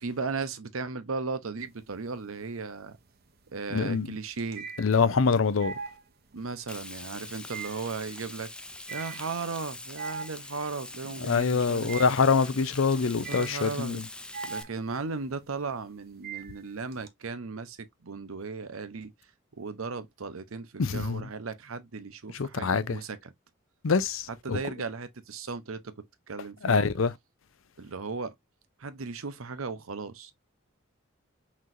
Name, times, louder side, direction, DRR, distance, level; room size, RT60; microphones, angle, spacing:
voice 1, 0.0-3.0 3.5-4.7 6.3-8.5 8.9-12.0 13.3-14.0 14.4-19.1 19.5-23.3 24.4-26.8 27.8-28.3 28.8-30.3, right 4 dB, 80° right, 0.8 m, -36 dB
sound 1, 1.6-2.2 2.6-17.1, right 5 dB, 45° right, 0.7 m, -42 dB
voice 2, 3.7-4.1 4.8-5.7 11.2-14.0 20.8-21.2 22.3-23.0 23.8-24.6 26.6-27.1, left 5 dB, 70° left, 0.5 m, -25 dB
Frying (food), 6.7-14.6, left 2 dB, 5° left, 0.3 m, -43 dB
5.9 x 3.1 x 2.6 m
head